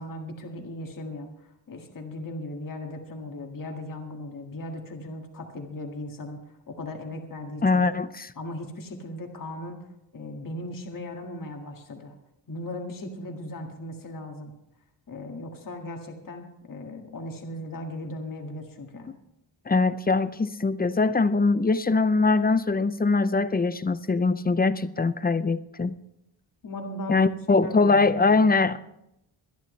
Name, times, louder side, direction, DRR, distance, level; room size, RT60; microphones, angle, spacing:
voice 1, 0.0-6.4 6.7-7.8 8.4-9.8 10.1-12.1 12.5-14.5 15.1-19.1 26.6-27.3 27.6-28.5, left 1 dB, 45° left, 2 dB, 1.9 m, -37 dB
voice 2, 7.6-8.3 19.7-25.9 27.1-28.8, left 3 dB, 20° left, 14 dB, 0.5 m, -22 dB
24.0 x 10.5 x 3.2 m, 0.84 s
wide cardioid pair, 135°, 45 cm